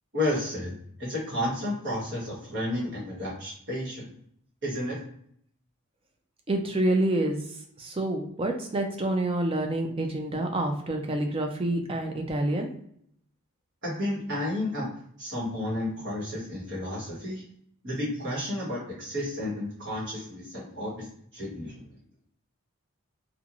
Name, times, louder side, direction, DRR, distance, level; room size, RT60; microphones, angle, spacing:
voice 1, 0.1-0.7 1.0-4.0 4.6-5.0 13.8-14.9 15.2-17.4 17.8-21.1 21.3-21.8, left 1 dB, 50° right, -4 dB, 1.3 m, -31 dB
voice 2, 6.5-7.4 7.8-12.7, right 1 dB, 25° right, 3 dB, 0.4 m, -27 dB
3.0 x 2.4 x 2.5 m, 0.67 s
head